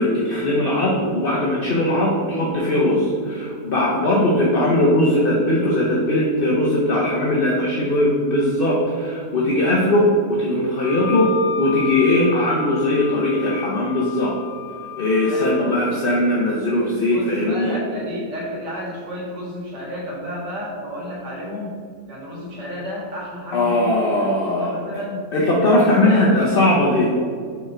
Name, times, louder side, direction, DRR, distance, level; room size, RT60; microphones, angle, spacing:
voice 1, 0.0-11.3 11.6-14.3 15.0-17.8 23.5-25.0 25.3-27.1, left 1 dB, 45° left, -4 dB, 0.8 m, -19 dB
Wind instrument woodwind instrument, 10.8-15.8, left 7 dB, 70° left, 1.1 m, -32 dB
voice 2, 15.3-15.9 17.1-21.8 22.1-25.2 25.7-26.7, left 1 dB, 80° right, -4 dB, 2.4 m, -32 dB
5.6 x 4.4 x 4.9 m, 2.1 s
omnidirectional pair, 1.8 m